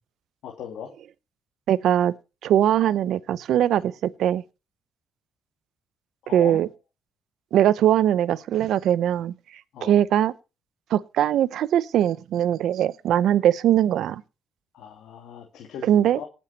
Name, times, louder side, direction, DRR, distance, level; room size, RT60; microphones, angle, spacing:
voice 1, 0.4-0.9 6.2-6.6 9.7-10.0 14.7-16.3, left 8 dB, 75° left, 2.4 m, -39 dB
voice 2, 1.7-2.1 2.4-4.4 6.3-6.7 7.5-9.3 9.8-10.3 10.9-14.2 15.8-16.2, right 11 dB, 75° right, 0.7 m, -21 dB
18.5 x 7.2 x 4.2 m
supercardioid pair, 75°, 0 cm